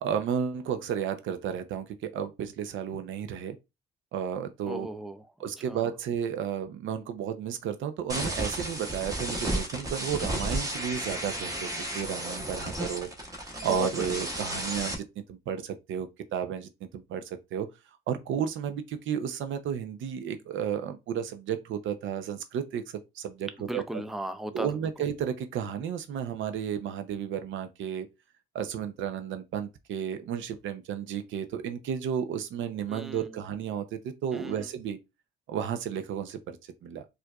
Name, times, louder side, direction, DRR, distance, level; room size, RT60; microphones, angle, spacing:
voice 1, 0.0-3.6 4.1-4.9 5.4-11.7 11.9-17.7 18.1-23.8 24.5-28.1 28.5-35.0 35.5-36.6 36.8-37.0, right 8 dB, 75° right, 0.5 m, -33 dB
voice 2, 4.7-5.9 13.5-14.2 23.6-24.7 32.9-33.3 34.3-34.7, right 1 dB, ahead, 0.4 m, -37 dB
sound 1, 8.1-14.9, right 1 dB, 15° right, 1.0 m, -33 dB
4.5 x 2.5 x 2.3 m
cardioid pair, 90°, 20 cm